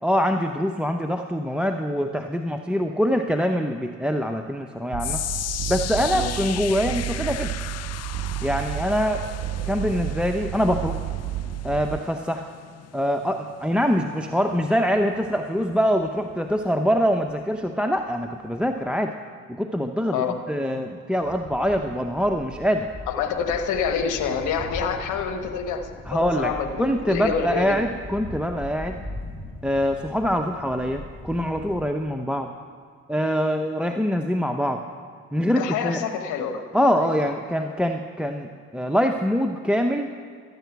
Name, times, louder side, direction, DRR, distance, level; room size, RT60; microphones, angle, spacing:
voice 1, 0.0-5.2 5.7-7.5 8.4-9.2 9.7-11.0 11.6-12.5 12.9-19.1 19.5-22.9 26.1-26.5 26.8-29.0 29.6-32.5 33.1-34.8 35.3-36.0 36.7-40.2, equal, 5° right, 5 dB, 0.7 m, -24 dB
sound 1, 4.9-12.0, right 13 dB, 55° right, 0.4 m, -31 dB
sound 2, 5.0-17.3 17.6-18.0 18.6-18.7, left 12 dB, 60° left, 0.5 m, -37 dB
sound 3, 21.2-31.8, left 1 dB, 20° left, 4.0 m, -39 dB
voice 2, 23.1-27.8 35.6-36.6 36.9-37.3, left 6 dB, 85° left, 7 dB, 1.2 m, -27 dB
13.5 x 9.1 x 5.9 m, 2.1 s
supercardioid pair, 50°, 29 cm